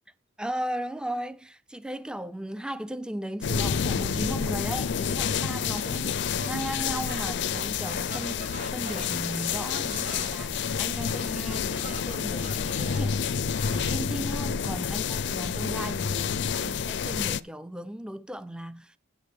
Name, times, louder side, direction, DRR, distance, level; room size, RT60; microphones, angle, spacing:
voice 1, 0.4-13.2 13.7-19.0, right 1 dB, 5° right, 0.4 m, -36 dB
sound 1, 3.4-17.4, left 6 dB, 65° left, 0.5 m, -29 dB
sound 2, 5.6-13.9, right 3 dB, 40° right, 1.7 m, -45 dB
8.6 x 7.1 x 6.6 m
head